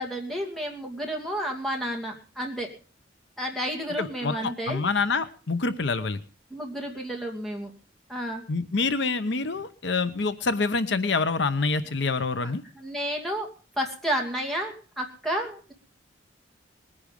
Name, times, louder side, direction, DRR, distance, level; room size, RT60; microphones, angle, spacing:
voice 1, 0.0-2.7 3.4-4.8 6.5-7.7 8.1-8.4 12.4-15.7, equal, ahead, 1 dB, 2.5 m, -31 dB
voice 2, 4.0-6.2 8.5-12.6, left 4 dB, 60° left, 12 dB, 0.8 m, -26 dB
20.0 x 9.9 x 5.2 m, 0.37 s
head